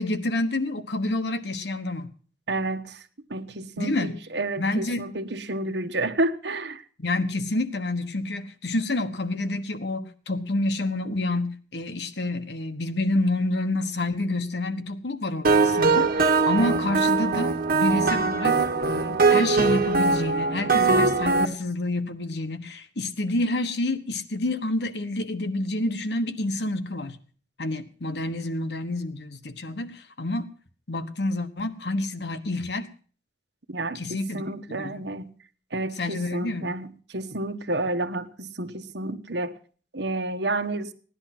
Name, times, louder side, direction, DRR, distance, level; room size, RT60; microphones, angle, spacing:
voice 1, 0.0-2.1 3.8-4.2 4.6-5.0 7.0-18.6 18.8-27.2 27.6-30.5 30.9-32.9 33.9-34.4 34.7-35.1 36.0-36.7, left 2 dB, 65° left, 1.3 m, -28 dB
voice 2, 2.5-3.0 3.3-6.8 33.7-35.3 35.7-39.5 39.9-40.9, right 2 dB, 70° right, 1.3 m, -30 dB
sound 1, 15.4-21.5, right 4 dB, 50° right, 1.5 m, -21 dB
17.0 x 11.0 x 5.9 m
head